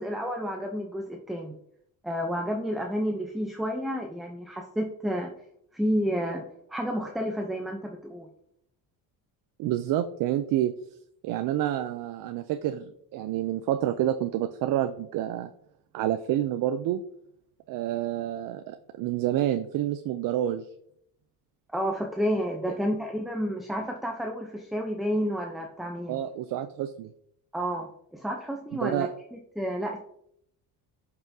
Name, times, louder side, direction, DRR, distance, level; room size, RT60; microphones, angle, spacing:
voice 1, 0.0-1.6 2.0-5.3 5.7-6.4 6.7-8.3 21.7-26.2 27.5-29.1 29.6-30.0, equal, ahead, 1 dB, 0.6 m, -30 dB
voice 2, 9.6-10.7 11.2-15.5 15.9-17.0 17.7-20.7 26.1-27.1 28.8-29.1, right 12 dB, 65° right, 10 dB, 0.5 m, -28 dB
10.5 x 5.7 x 2.7 m, 0.71 s
cardioid pair, 145°, 36 cm